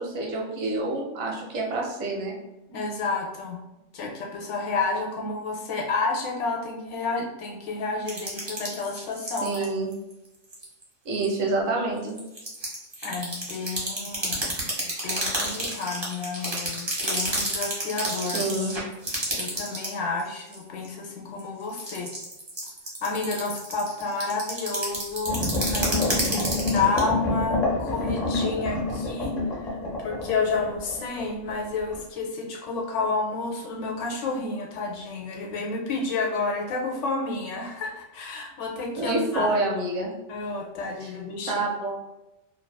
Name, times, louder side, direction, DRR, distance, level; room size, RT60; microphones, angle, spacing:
voice 1, 0.0-2.3 9.4-9.9 11.0-12.2 18.3-18.8 39.0-40.1 41.0-41.1 41.5-42.0, right 2 dB, 85° right, 0 dB, 1.1 m, -27 dB
voice 2, 2.7-3.6 3.9-9.7 13.0-18.4 19.3-22.1 23.0-39.5 40.3-41.6, left 3 dB, 70° left, 0 dB, 0.8 m, -30 dB
sound 1, 8.1-9.6 9.9-10.1 10.5-10.8 11.1-11.2 12.0-19.9 20.2-20.9 21.4-27.0, right 1 dB, 25° right, 0.6 m, -30 dB
sound 2, 25.2-31.6 31.9-32.0, left 2 dB, 40° left, 0.7 m, -28 dB
2.6 x 2.3 x 2.2 m, 0.98 s
omnidirectional pair, 1.4 m